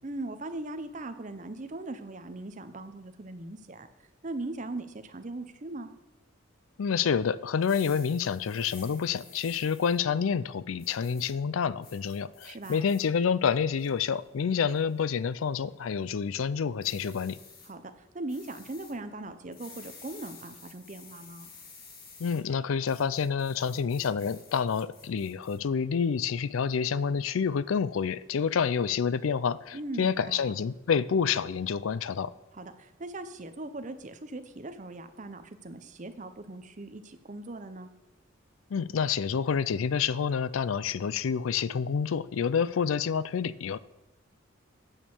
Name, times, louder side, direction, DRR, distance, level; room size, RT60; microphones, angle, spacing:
voice 1, 0.0-3.9 4.2-5.9 12.4-12.9 17.7-21.5 29.7-30.5 32.5-37.9, right 2 dB, 40° right, 9 dB, 0.7 m, -39 dB
voice 2, 6.8-17.4 22.2-32.3 38.7-43.8, left 6 dB, 90° left, 17 dB, 0.4 m, -28 dB
sound 1, 7.5-10.0 10.8-11.3 11.8-13.0 13.5-14.1 14.7-15.0 16.8-17.7 18.3-18.9 19.5-22.4 22.9-25.6, left 5 dB, 50° left, 1.9 m, -51 dB
8.9 x 6.4 x 7.1 m, 0.95 s
head